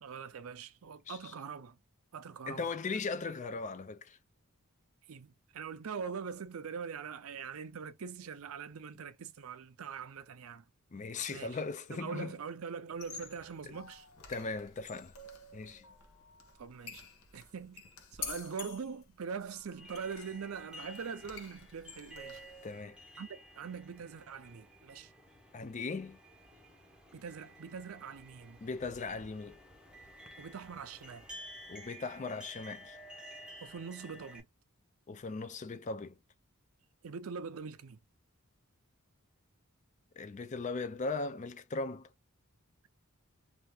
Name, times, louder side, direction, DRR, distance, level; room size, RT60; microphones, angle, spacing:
voice 1, 0.0-1.8 2.1-2.7 5.1-10.6 11.3-11.6 11.9-14.1 16.6-17.1 17.3-17.8 18.1-22.4 23.2-23.3 23.5-25.1 27.1-28.6 30.4-31.3 33.6-34.5 37.0-38.0, right 6 dB, 70° right, 0.5 m, -43 dB
voice 2, 2.5-4.2 10.9-12.3 14.3-15.1 15.5-15.9 22.6-23.0 25.5-26.2 28.6-29.6 31.7-33.0 35.1-36.2 40.2-42.1, left 4 dB, 35° left, 0.4 m, -38 dB
sound 1, 12.9-22.7, left 5 dB, 70° left, 0.9 m, -49 dB
sound 2, 19.8-34.4, equal, 5° right, 0.7 m, -53 dB
2.7 x 2.4 x 3.3 m
head